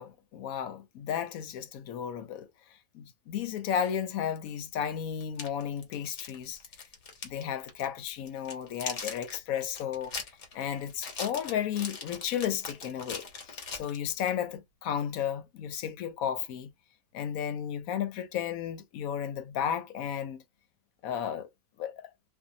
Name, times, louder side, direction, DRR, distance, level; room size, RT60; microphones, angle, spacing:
voice 1, 0.0-2.5 2.9-6.6 7.2-10.1 10.5-16.7 17.1-20.4 21.0-21.5 21.8-22.0, left 9 dB, 90° left, 1.1 m, -33 dB
sound 1, 5.2-7.4 7.7-7.9 8.3-14.3, left 5 dB, 60° left, 1.2 m, -40 dB
2.6 x 2.4 x 2.6 m
omnidirectional pair, 1.4 m